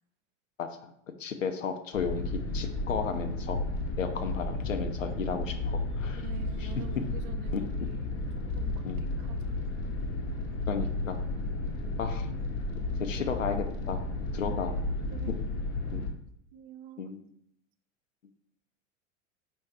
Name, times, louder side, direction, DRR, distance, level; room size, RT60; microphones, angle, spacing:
voice 1, 1.2-3.6 4.0-6.2 6.6-7.0 7.5-7.6 8.8-9.1 10.7-11.2 12.0-12.3 13.0-14.0 14.3-14.8 15.9-16.1 17.0-17.2, left 6 dB, 80° left, 6 dB, 0.5 m, -34 dB
sound 1, 1.9-16.1, left 2 dB, 35° left, 0.8 m, -33 dB
voice 2, 6.1-8.3 8.5-8.9 9.2-9.6 14.4-14.8 15.1-15.4 16.5-17.1, right 11 dB, 40° right, 9 dB, 0.4 m, -47 dB
4.2 x 3.1 x 3.3 m, 0.71 s
figure-of-eight pair, 85°, 38 cm